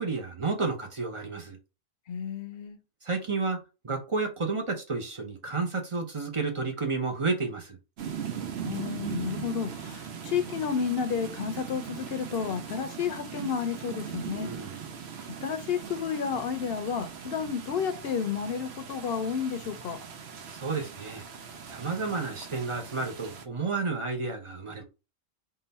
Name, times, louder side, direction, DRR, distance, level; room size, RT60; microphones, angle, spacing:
voice 1, 0.0-1.6 3.0-7.8 14.3-14.8 20.5-21.2 21.7-24.8, right 4 dB, 35° right, 0.7 m, -31 dB
voice 2, 2.1-2.8 8.6-14.5 15.4-20.0, left 7 dB, 65° left, 0.9 m, -31 dB
sound 1, 8.0-23.5, right 7 dB, 75° right, 0.9 m, -40 dB
3.9 x 2.6 x 4.0 m
omnidirectional pair, 1.1 m